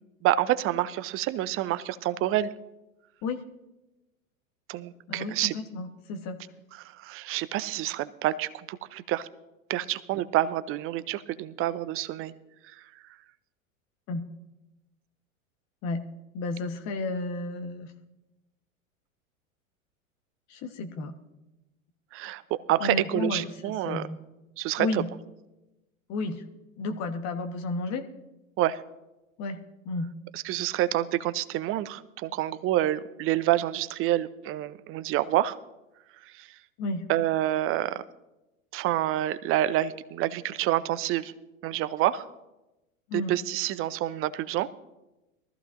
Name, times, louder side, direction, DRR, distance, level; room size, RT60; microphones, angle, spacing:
voice 1, 0.2-2.5 4.7-5.5 7.0-9.3 9.7-12.3 22.1-22.4 22.7-24.0 24.6-25.0 28.6-28.8 30.3-35.6 36.4-36.5 37.1-38.0 38.7-41.3 41.6-42.3 43.1-44.7, right 14 dB, 30° right, 15 dB, 0.7 m, -28 dB
voice 2, 5.1-6.4 14.1-14.3 15.8-16.0 16.3-17.9 20.5-21.1 22.8-24.2 24.8-25.1 26.1-26.4 26.8-28.1 29.4-30.1 36.8-37.1 43.1-43.3, left 3 dB, 40° left, 6 dB, 1.3 m, -32 dB
22.5 x 14.0 x 2.6 m, 0.99 s
figure-of-eight pair, 90°, 41 cm